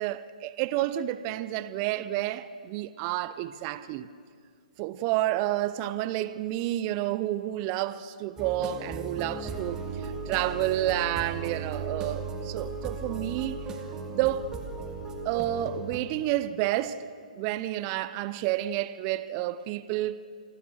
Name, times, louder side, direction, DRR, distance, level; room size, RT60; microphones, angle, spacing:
voice 1, 0.0-4.1 4.8-13.6 14.1-14.5 15.2-17.1 17.4-20.2, right 14 dB, 35° right, 0.7 m, -30 dB
sound 1, 8.4-16.0, right 4 dB, 15° right, 2.2 m, -36 dB
27.0 x 15.0 x 6.4 m
hypercardioid pair, 135°, 4 cm